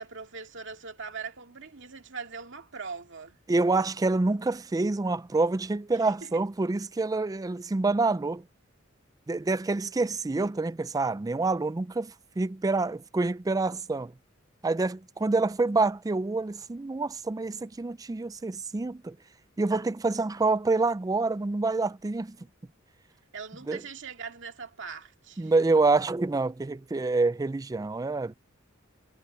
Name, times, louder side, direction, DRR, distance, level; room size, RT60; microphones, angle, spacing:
voice 1, 0.0-3.4 6.0-6.3 23.3-25.5, right 5 dB, 65° right, 2.2 m, -41 dB
voice 2, 3.5-8.4 9.3-14.1 14.6-19.2 19.6-22.4 23.7-23.8 25.4-28.3, right 3 dB, 15° right, 0.4 m, -27 dB
head